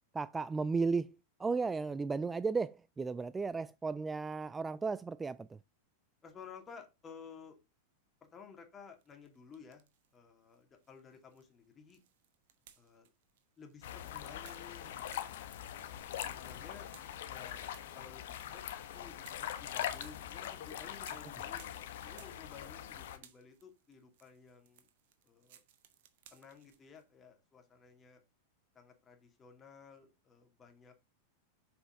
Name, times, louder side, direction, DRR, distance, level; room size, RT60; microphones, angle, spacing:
voice 1, 0.1-1.1 1.4-5.6, right 4 dB, 15° right, 0.3 m, -34 dB
voice 2, 6.2-7.6 8.2-9.8 10.1-12.0 12.8-13.1 13.6-15.6 16.3-16.9 17.3-17.6 17.9-18.6 18.9-21.7 22.0-24.9 25.2-25.6 26.3-28.2 28.7-30.9, left 6 dB, 25° left, 2.5 m, -55 dB
sound 1, 9.0-10.2 10.5-22.9 23.1-27.0, right 10 dB, 65° right, 1.4 m, -63 dB
sound 2, 13.8-23.2, left 11 dB, 70° left, 1.2 m, -42 dB
7.1 x 5.6 x 3.7 m
hypercardioid pair, 100°, 0 cm